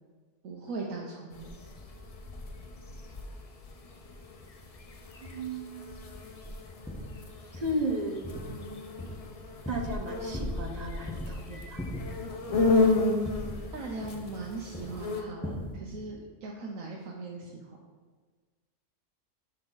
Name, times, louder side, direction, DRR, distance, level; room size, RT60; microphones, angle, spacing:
voice 1, 0.4-1.5 13.7-17.8, right 3 dB, 90° right, -2 dB, 1.2 m, -39 dB
sound 1, 1.3-15.2, left 3 dB, 40° left, 0.5 m, -33 dB
voice 2, 5.2-6.0 7.5-8.2 9.7-11.8, right 1 dB, 40° right, 3 dB, 0.7 m, -34 dB
sound 2, 6.4-6.6 6.9-7.2 7.5-7.8 8.2-8.7 9.0-10.0 10.3-10.8 11.1-11.4 11.8-12.9 13.3-14.5 14.7-15.0 15.4-15.8, left 1 dB, 5° left, 0.8 m, -38 dB
9.9 x 4.4 x 3.8 m, 1.5 s
omnidirectional pair, 1.4 m